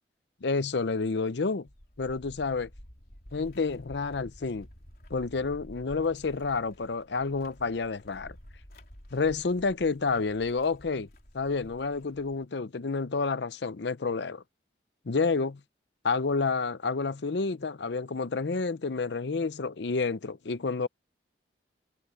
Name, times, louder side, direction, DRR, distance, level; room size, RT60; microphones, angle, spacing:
voice 1, 0.4-1.7 2.0-2.7 3.3-4.7 5.1-8.3 9.1-11.1 11.3-14.4 15.1-15.6 16.0-20.9, left 4 dB, 65° left, 0.6 m, -29 dB
sound 1, 1.7-12.5, equal, 50° left, 3.9 m, -51 dB
head